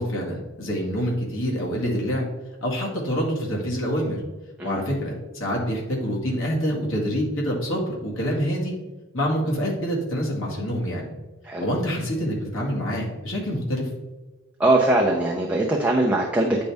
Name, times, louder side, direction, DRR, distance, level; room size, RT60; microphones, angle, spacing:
voice 1, 0.0-2.3 2.6-4.2 4.6-8.8 9.1-11.1 11.6-13.9, equal, 70° left, -2 dB, 1.9 m, -26 dB
voice 2, 14.6-16.6, right 2 dB, 5° right, -3 dB, 0.6 m, -21 dB
9.2 x 5.3 x 3.5 m, 1.1 s
head